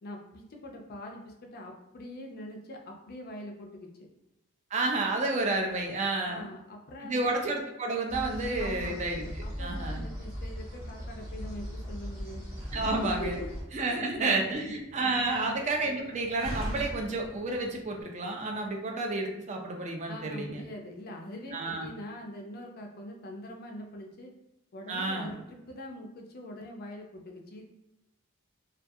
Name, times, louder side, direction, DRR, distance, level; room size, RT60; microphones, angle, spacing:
voice 1, 0.0-4.1 6.2-7.4 8.6-9.0 9.4-12.4 12.8-13.5 14.0-14.7 15.3-15.6 20.1-24.3 24.7-27.6, left 1 dB, 45° left, 2 dB, 0.4 m, -43 dB
voice 2, 4.7-6.5 7.0-10.0 12.7-13.4 13.7-20.6 21.5-21.9 24.9-25.3, right 2 dB, 35° right, 2 dB, 0.4 m, -30 dB
sound 1, 8.1-13.6, equal, 15° right, 0.8 m, -38 dB
Slam, 12.5-18.0, equal, 75° right, 0.7 m, -43 dB
2.3 x 2.3 x 2.6 m, 0.89 s
head